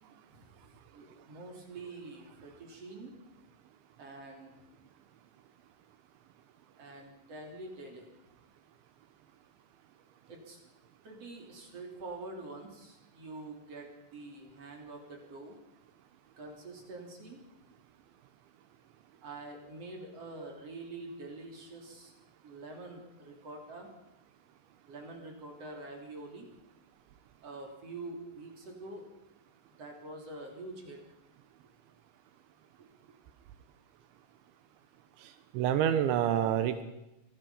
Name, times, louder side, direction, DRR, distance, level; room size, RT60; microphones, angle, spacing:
voice 1, 0.3-3.1 4.0-4.6 6.8-8.1 10.3-10.6 11.0-15.6 16.4-17.4 19.2-22.1 22.4-23.9 24.9-26.5 27.4-29.1 29.8-31.0 32.8-32.9, right 2 dB, 35° right, 1 dB, 3.9 m, -46 dB
voice 2, 35.2-36.8, right 10 dB, 85° right, 10 dB, 3.4 m, -28 dB
25.5 x 18.0 x 5.7 m, 0.92 s
omnidirectional pair, 5.2 m